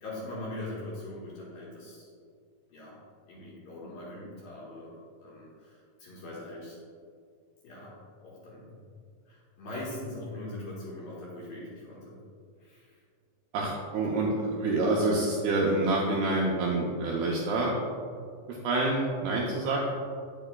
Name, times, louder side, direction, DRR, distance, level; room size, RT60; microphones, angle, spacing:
voice 1, 0.0-2.1 2.7-3.0 3.3-4.9 5.2-6.8 7.6-7.9 8.2-8.8 9.3-12.2 12.6-13.0, left 1 dB, 60° left, -7 dB, 2.6 m, -41 dB
voice 2, 13.5-17.7 18.5-19.8, right 2 dB, 80° right, -3 dB, 2.3 m, -27 dB
8.9 x 8.9 x 2.3 m, 2.2 s
omnidirectional pair, 5.3 m